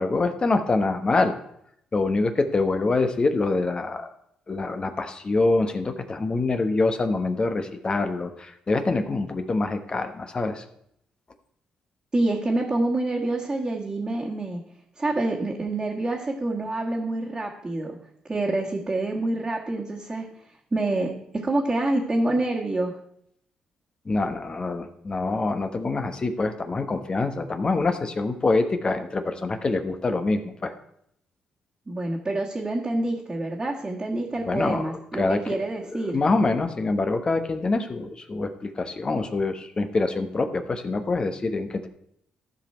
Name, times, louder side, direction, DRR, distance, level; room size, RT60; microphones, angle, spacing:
voice 1, 0.0-1.4 1.9-4.1 4.5-10.6 24.0-30.7 34.5-35.6 35.9-41.9, left 3 dB, 35° left, 8 dB, 1.2 m, -25 dB
voice 2, 12.1-14.6 15.0-18.0 18.2-20.3 20.7-22.9 31.9-36.2, right 2 dB, 25° right, -4 dB, 1.7 m, -27 dB
14.0 x 5.2 x 4.4 m, 0.72 s
supercardioid pair, 65°, 3 cm